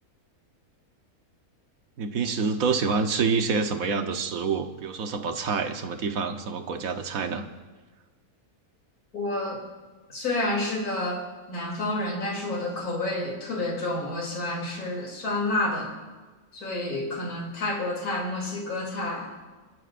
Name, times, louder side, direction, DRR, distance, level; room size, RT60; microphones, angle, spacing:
voice 1, 2.0-7.4, right 5 dB, 70° right, 6 dB, 1.4 m, -27 dB
voice 2, 9.1-9.6 10.1-15.9 16.5-19.3, left 2 dB, 75° left, -1 dB, 3.5 m, -29 dB
28.5 x 12.0 x 2.6 m, 1.4 s
omnidirectional pair, 1.6 m